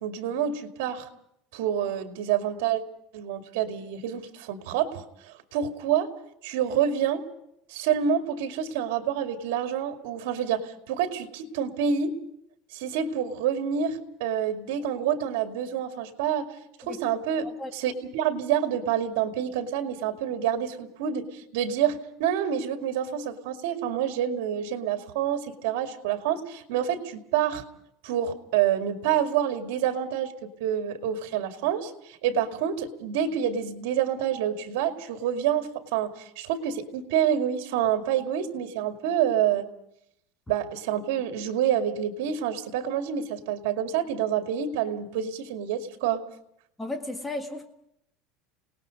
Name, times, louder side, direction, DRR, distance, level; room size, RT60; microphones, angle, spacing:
voice 1, 0.0-1.1 1.5-2.8 3.1-6.1 6.4-7.3 7.7-12.2 12.7-16.5 16.9-27.6 28.0-39.7 40.5-46.2, right 9 dB, 80° right, 6 dB, 2.3 m, -27 dB
voice 2, 17.4-17.7 46.8-47.7, left 2 dB, 5° left, 5 dB, 1.8 m, -34 dB
28.5 x 19.0 x 5.3 m, 0.76 s
cardioid pair, 170°, 0 cm